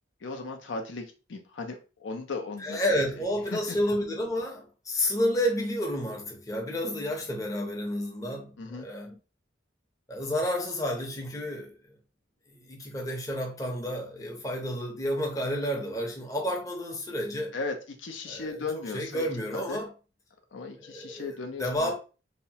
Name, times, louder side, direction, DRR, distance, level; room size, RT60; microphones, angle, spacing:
voice 1, 0.2-2.8 3.1-3.2 3.5-3.8 8.6-8.9 17.5-19.3 19.5-19.8 20.5-21.9, left 3 dB, 85° left, 0.5 m, -36 dB
voice 2, 2.6-9.1 10.1-11.7 12.5-17.5 18.3-18.6 18.9-19.9 20.8-21.9, equal, 20° left, 0.6 m, -30 dB
2.8 x 2.1 x 2.7 m
head